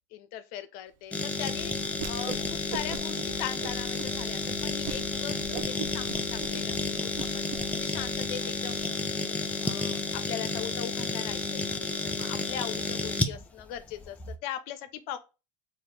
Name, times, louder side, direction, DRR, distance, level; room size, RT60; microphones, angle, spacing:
voice 1, 0.1-1.7 2.0-9.3 9.6-10.0 10.3-15.2, left 10 dB, 60° left, 0.5 m, -40 dB
sound 1, 1.1-14.4, left 3 dB, 10° left, 0.4 m, -31 dB
sound 2, 1.4-8.6, left 2 dB, 5° right, 1.4 m, -48 dB
Whoosh swoosh swish, 1.9-2.4 2.7-3.2 3.6-4.1 4.5-4.6 4.8-5.0 5.4-7.6, right 8 dB, 80° right, 0.6 m, -39 dB
4.1 x 2.4 x 3.2 m
supercardioid pair, 100°, 17 cm